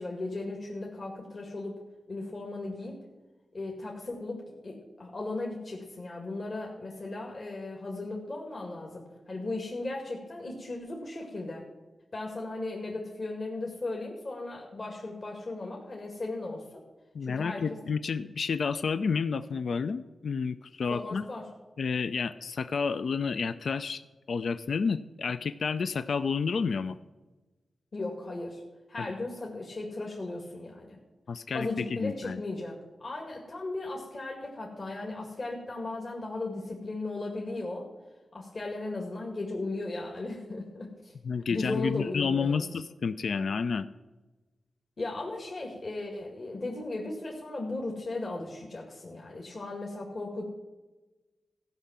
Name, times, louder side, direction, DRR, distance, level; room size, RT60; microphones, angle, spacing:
voice 1, 0.0-1.8 2.1-3.0 3.5-11.6 12.1-16.8 17.2-17.8 20.9-21.4 27.9-28.6 28.9-31.0 31.5-37.9 38.3-41.1 41.5-42.6 45.0-50.4, left 2 dB, 50° left, -1 dB, 2.0 m, -36 dB
voice 2, 17.1-21.3 21.8-24.0 24.3-27.0 29.0-29.1 31.3-32.4 41.2-43.9, left 5 dB, 70° left, 13 dB, 0.4 m, -30 dB
15.0 x 5.6 x 7.3 m, 1.2 s
cardioid pair, 80°, 0 cm